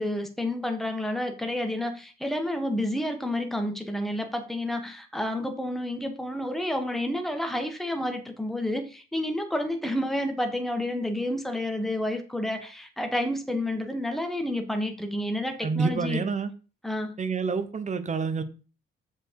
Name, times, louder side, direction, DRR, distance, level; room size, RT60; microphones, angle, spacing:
voice 1, 0.0-16.2 16.8-17.2, left 1 dB, ahead, 5 dB, 1.6 m, -30 dB
voice 2, 15.6-16.5 17.2-18.4, right 5 dB, 35° right, 11 dB, 1.1 m, -28 dB
7.4 x 5.1 x 4.9 m, 0.35 s
cardioid pair, 90°, 20 cm